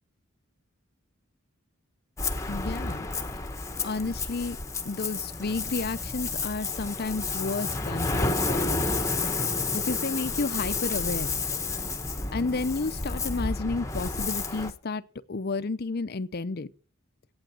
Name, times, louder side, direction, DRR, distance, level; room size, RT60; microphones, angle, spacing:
Ocean, 2.2-14.7, left 3 dB, 15° left, 1.0 m, -30 dB
voice 1, 2.5-3.1 3.8-4.6 4.8-8.9 9.7-11.3 12.3-15.0 15.3-16.7, left 3 dB, 50° left, 0.6 m, -31 dB
12.0 x 8.8 x 7.5 m
head